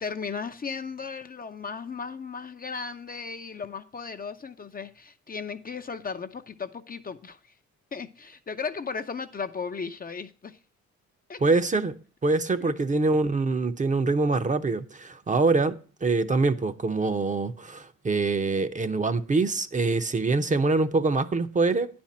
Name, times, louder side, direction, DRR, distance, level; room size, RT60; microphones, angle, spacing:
voice 1, 0.0-7.5 7.9-10.6 11.3-11.6 12.6-12.7, left 5 dB, 30° left, 0.6 m, -36 dB
voice 2, 11.4-12.0 12.2-21.9, right 3 dB, 25° right, 0.7 m, -24 dB
9.7 x 4.4 x 7.2 m
cardioid pair, 90°, 30 cm